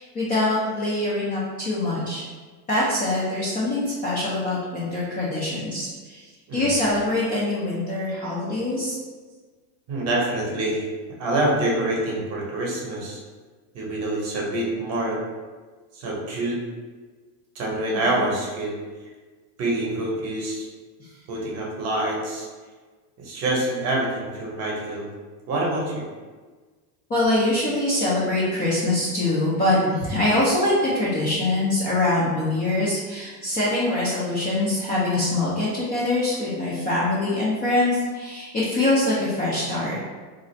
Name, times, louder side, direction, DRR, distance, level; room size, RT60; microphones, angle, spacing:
voice 1, 0.0-2.2 2.7-6.2 6.5-9.0 27.1-40.0, left 2 dB, 20° left, -9 dB, 0.4 m, -24 dB
voice 2, 9.9-10.9 11.2-13.2 13.7-15.2 15.9-16.6 17.5-18.8 19.6-20.7 21.3-22.5 23.2-25.1 25.5-26.1, right 1 dB, 35° right, -3 dB, 0.8 m, -26 dB
2.5 x 2.4 x 4.1 m, 1.4 s
supercardioid pair, 145°, 46 cm